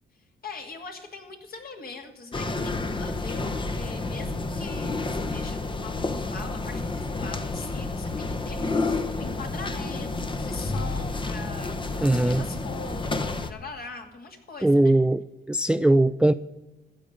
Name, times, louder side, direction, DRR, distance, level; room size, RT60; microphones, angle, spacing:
voice 1, 0.4-15.0, left 4 dB, 50° left, 3 dB, 2.4 m, -42 dB
sound 1, 2.3-13.5, left 3 dB, 25° left, 1.0 m, -30 dB
voice 2, 12.0-12.4 14.6-15.2 15.5-16.3, right 1 dB, 5° right, 14 dB, 0.3 m, -20 dB
15.0 x 5.2 x 9.6 m, 1.0 s
cardioid pair, 90°, 20 cm